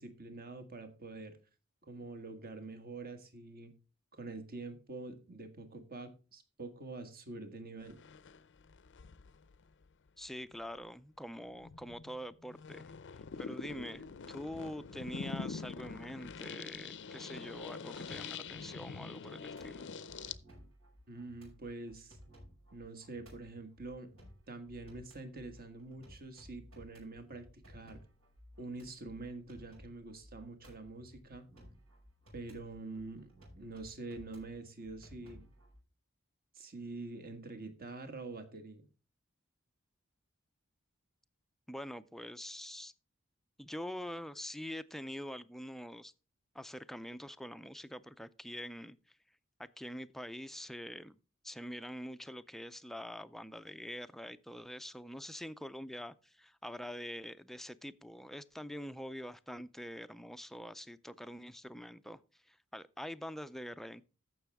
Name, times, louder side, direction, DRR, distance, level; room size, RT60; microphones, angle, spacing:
voice 1, 0.0-1.4 1.8-3.7 4.1-8.0 21.1-22.2 22.7-24.1 24.5-28.0 28.6-31.5 32.3-33.3 33.6-35.4 36.5-38.8, right 3 dB, 45° right, 1.5 m, -46 dB
sound 1, 7.8-9.9 10.5-10.8 11.5-20.3, left 5 dB, 60° left, 0.5 m, -45 dB
voice 2, 10.2-12.9 13.4-19.9 41.7-42.9 43.6-46.1 46.5-49.0 49.6-51.2 51.4-64.0, equal, ahead, 0.4 m, -45 dB
sound 2, 19.5-35.8, equal, 75° right, 5.9 m, -58 dB
14.5 x 6.0 x 3.5 m
head